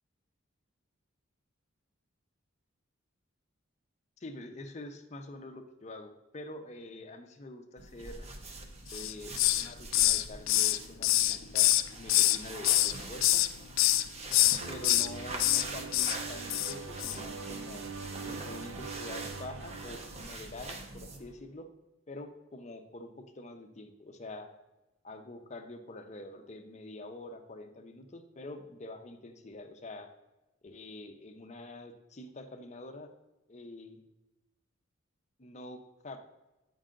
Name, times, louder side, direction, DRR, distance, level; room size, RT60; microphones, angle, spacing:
voice 1, 4.2-8.3 8.9-13.4 14.7-18.0 18.2-21.7 22.1-24.5 25.0-30.1 30.6-33.1 33.5-34.0 35.4-35.8 36.0-36.2, left 2 dB, 35° left, 6 dB, 0.6 m, -46 dB
sound 1, 7.8-21.3, right 2 dB, 30° right, 0.8 m, -44 dB
Hiss, 8.9-9.7 9.9-12.4 12.6-13.5 13.8-14.0 14.3-15.1 15.4-15.6 15.9-16.2 16.5-16.7 17.0-17.2, left 15 dB, 70° left, 0.3 m, -25 dB
sound 2, 14.6-21.0, right 4 dB, 70° right, 0.6 m, -44 dB
8.7 x 5.4 x 3.8 m, 1.0 s
head